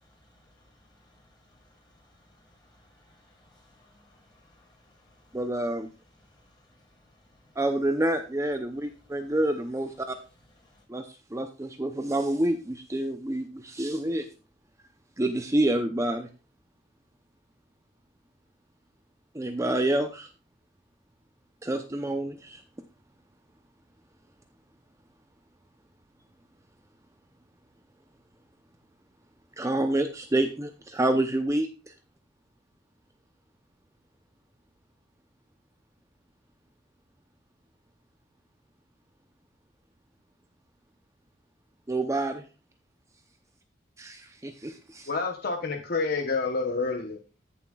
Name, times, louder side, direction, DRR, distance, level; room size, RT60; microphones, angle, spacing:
voice 1, 0.0-7.6 8.7-9.4 10.0-10.2 10.5-10.8, left 1 dB, 25° left, -2 dB, 5.5 m, -62 dB
voice 2, 5.3-5.9 7.6-10.2 10.9-14.3 15.2-16.3 19.3-20.3 21.6-22.6 29.6-31.9 41.9-42.4 44.0-45.1, right 1 dB, 15° right, 7 dB, 0.7 m, -28 dB
voice 3, 45.1-47.2, left 4 dB, 55° left, 4 dB, 1.0 m, -28 dB
14.5 x 7.1 x 2.4 m, 0.34 s
head